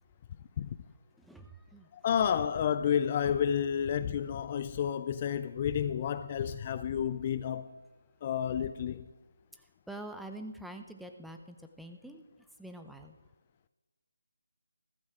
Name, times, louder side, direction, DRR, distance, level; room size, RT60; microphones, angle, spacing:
voice 1, 1.2-1.9 9.9-12.2 12.6-13.2, right 1 dB, ahead, 0.7 m, -45 dB
voice 2, 1.9-7.7 8.2-9.1, left 8 dB, 30° left, 0.4 m, -30 dB
15.0 x 14.0 x 4.9 m
figure-of-eight pair, 155°, 0 cm